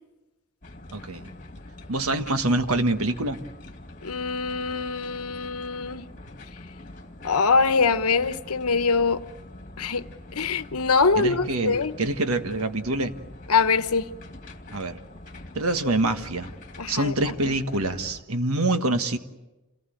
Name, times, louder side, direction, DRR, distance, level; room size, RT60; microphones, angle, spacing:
sound 1, 0.6-18.2, left 2 dB, 35° left, 2.1 m, -44 dB
voice 1, 0.9-1.2 1.9-3.4 11.2-13.1 14.7-15.0 15.5-16.5 16.9-19.2, right 2 dB, 75° right, 1.5 m, -25 dB
voice 2, 4.0-6.1 7.2-9.2 9.8-12.0 13.5-14.1 16.8-17.6, left 4 dB, 85° left, 1.0 m, -24 dB
28.0 x 19.0 x 9.2 m
head